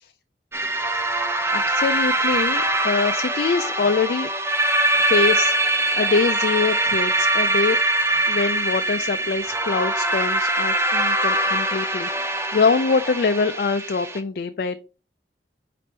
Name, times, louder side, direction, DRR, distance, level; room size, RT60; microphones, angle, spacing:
sound 1, 0.5-14.2, right 2 dB, 15° right, 0.5 m, -22 dB
voice 1, 1.5-4.3 4.9-5.6 5.9-7.8 8.3-14.8, left 4 dB, 55° left, 8 dB, 0.4 m, -24 dB
5.1 x 4.2 x 4.4 m, 0.34 s
head